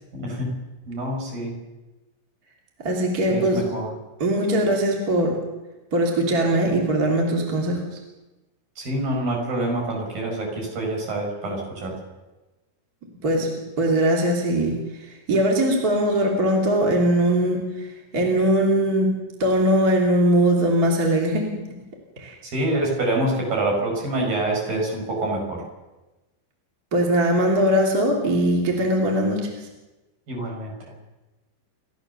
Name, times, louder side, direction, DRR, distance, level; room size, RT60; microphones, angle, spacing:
voice 1, 0.1-0.5 0.9-1.6 3.3-3.9 8.8-11.9 22.4-25.6 30.3-30.7, right 1 dB, 45° right, -1 dB, 7.1 m, -26 dB
voice 2, 2.8-3.6 4.2-5.3 5.9-7.8 13.2-21.5 22.2-22.4 26.9-29.5, right 1 dB, 25° right, 0 dB, 2.5 m, -21 dB
29.0 x 13.5 x 7.0 m, 1.1 s
omnidirectional pair, 5.8 m